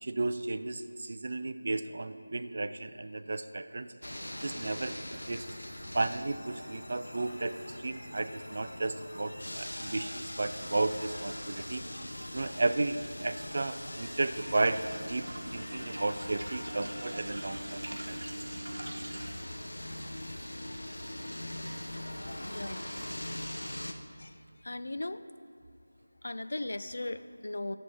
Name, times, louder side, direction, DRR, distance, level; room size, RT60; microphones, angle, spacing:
voice 1, 0.0-3.9 4.4-5.5 5.9-11.8 12.3-14.8 15.1-15.2 15.5-18.2, right 2 dB, 40° right, 11 dB, 0.4 m, -33 dB
sound 1, 4.0-23.9, left 1 dB, 85° left, 0.9 m, -41 dB
sound 2, 14.3-19.3, right 1 dB, 65° right, 1.1 m, -43 dB
voice 2, 22.4-22.8 24.2-24.4 24.6-25.2 26.2-27.8, left 2 dB, 60° left, 11 dB, 0.4 m, -37 dB
11.0 x 7.0 x 4.7 m, 2.4 s
figure-of-eight pair, 170°, 0 cm